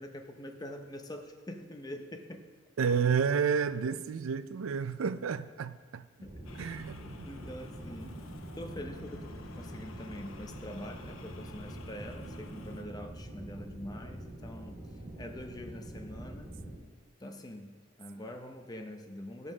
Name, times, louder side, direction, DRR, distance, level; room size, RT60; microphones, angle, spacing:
voice 1, 0.0-2.4 6.6-6.8 7.3-8.2 8.6-9.3 9.6-14.8 15.2-16.5 17.2-19.5, left 1 dB, 20° left, 4 dB, 0.7 m, -44 dB
voice 2, 2.8-6.0 6.6-7.3, right 6 dB, 80° right, 14 dB, 0.4 m, -30 dB
sound 1, 6.2-16.8, right 1 dB, 25° right, 2.3 m, -45 dB
sound 2, 6.4-12.8, left 3 dB, 90° left, 0.7 m, -50 dB
11.0 x 5.4 x 6.1 m, 1.5 s
head